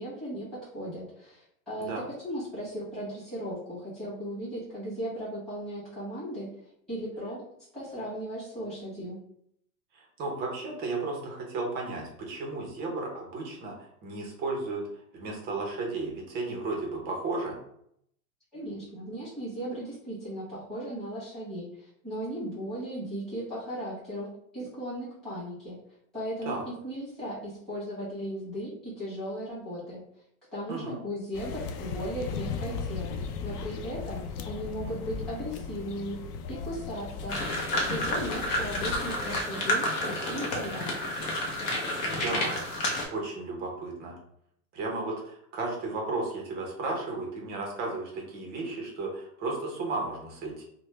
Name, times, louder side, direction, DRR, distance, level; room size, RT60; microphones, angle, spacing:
voice 1, 0.0-1.9 2.2-6.5 6.9-7.4 7.7-9.2 18.5-24.3 24.5-25.7 26.1-30.0 30.5-33.1 33.4-36.2 36.5-37.4 37.8-40.9, equal, ahead, -12 dB, 1.4 m, -37 dB
voice 2, 9.9-14.8 15.1-17.6 26.4-26.6 30.7-31.0 42.0-42.6 43.1-44.2 44.7-50.6, right 3 dB, 20° right, -1 dB, 0.6 m, -34 dB
sound 1, 31.3-39.4, left 5 dB, 85° left, 0.6 m, -37 dB
sound 2, 37.3-43.1, left 1 dB, 40° left, 0.7 m, -30 dB
3.0 x 2.1 x 3.2 m, 0.71 s
supercardioid pair, 150°, 45 cm